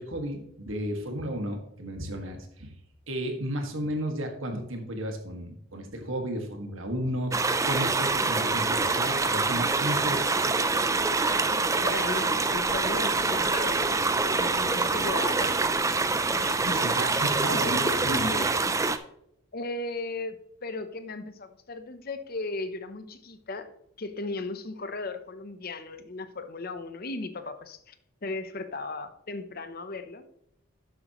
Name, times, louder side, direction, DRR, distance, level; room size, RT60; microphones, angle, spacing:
voice 1, 0.0-2.7 3.1-7.4 7.7-10.6 16.7-18.3, equal, 70° right, 4 dB, 1.9 m, -33 dB
sound 1, 7.3-19.0, right 3 dB, 15° right, 0.4 m, -25 dB
voice 2, 11.8-16.8 17.5-18.6 19.5-23.7 24.0-27.9 28.2-30.2, left 2 dB, 45° left, 10 dB, 0.8 m, -36 dB
11.5 x 7.9 x 3.1 m, 0.75 s
head